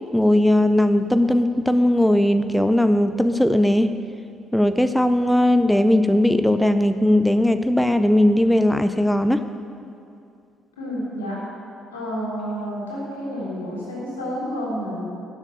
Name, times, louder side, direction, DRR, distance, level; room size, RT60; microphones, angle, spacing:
voice 1, 0.1-3.9 4.5-9.4, left 1 dB, 5° left, 11 dB, 0.6 m, -18 dB
voice 2, 10.8-11.3 11.9-15.0, equal, 85° left, -6 dB, 3.4 m, -29 dB
12.5 x 7.6 x 8.3 m, 2.5 s
figure-of-eight pair, 45°, 0 cm